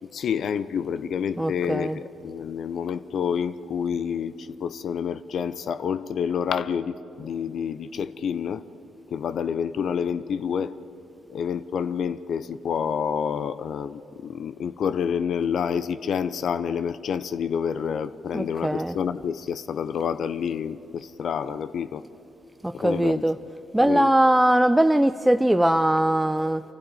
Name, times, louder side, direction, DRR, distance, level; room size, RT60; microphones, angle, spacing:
voice 1, 0.0-8.6 9.1-10.8 11.3-22.0 22.7-23.2 23.8-24.1, left 7 dB, 60° left, 14 dB, 0.6 m, -28 dB
voice 2, 1.4-2.0 18.3-19.0 22.6-23.4 23.7-26.6, right 1 dB, 10° right, 9 dB, 0.6 m, -21 dB
27.0 x 12.5 x 9.1 m, 2.9 s
hypercardioid pair, 45°, 0 cm